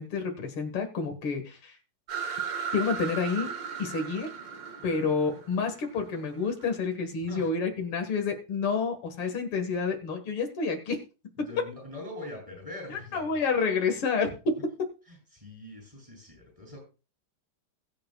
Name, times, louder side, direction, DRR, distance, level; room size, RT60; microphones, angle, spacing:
voice 1, 0.0-1.7 2.7-3.5 3.8-4.3 4.8-11.0 12.9-14.3, left 5 dB, 85° left, 5 dB, 2.5 m, -29 dB
sound 1, 2.1-6.6, right 7 dB, 60° right, 2.6 m, -36 dB
voice 2, 7.2-7.5 11.4-13.3 14.3-14.4 15.1-16.8, left 2 dB, 15° right, 1 dB, 7.8 m, -43 dB
21.5 x 7.7 x 2.3 m, 0.33 s
omnidirectional pair, 2.3 m